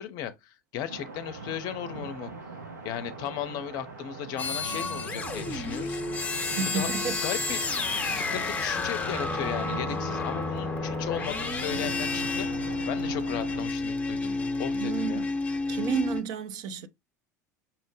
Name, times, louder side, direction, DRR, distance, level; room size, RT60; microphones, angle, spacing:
voice 1, 0.0-2.3 2.8-6.4 6.7-6.9 7.2-7.6 8.0-15.3, left 10 dB, 45° left, 0.6 m, -36 dB
sound 1, 0.9-13.6, right 4 dB, 75° right, 1.1 m, -41 dB
sound 2, 4.4-16.2, left 3 dB, 15° left, 0.8 m, -31 dB
voice 2, 6.3-7.2 14.7-15.3 15.7-16.9, right 6 dB, 45° right, 0.5 m, -31 dB
5.7 x 2.1 x 3.2 m
figure-of-eight pair, 75°, 9 cm